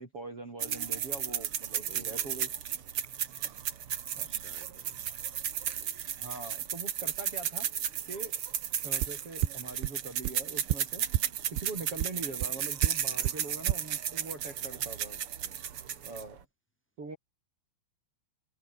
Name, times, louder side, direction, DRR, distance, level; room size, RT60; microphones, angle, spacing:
voice 1, 0.0-2.5 4.2-4.4 6.2-7.7 8.1-8.4 8.8-11.1 11.5-15.2 16.0-16.4 17.0-17.2, right 3 dB, 35° right, 5.4 m, -43 dB
sound 1, 0.6-16.4, right 9 dB, 55° right, 1.5 m, -34 dB
voice 2, 1.8-2.5 4.2-5.0 8.0-8.2 13.0-13.3 15.4-16.3, right 1 dB, 5° left, 4.5 m, -57 dB
sound 2, 9.0-9.1 9.4-9.5 9.8-9.9 10.2-10.3 10.7-10.8 11.1-11.2 11.6-11.7 12.0-12.1 12.4-12.5 12.8-12.9 13.2-13.3 13.7-13.8, right 15 dB, 85° right, 3.2 m, -26 dB
omnidirectional pair, 4.9 m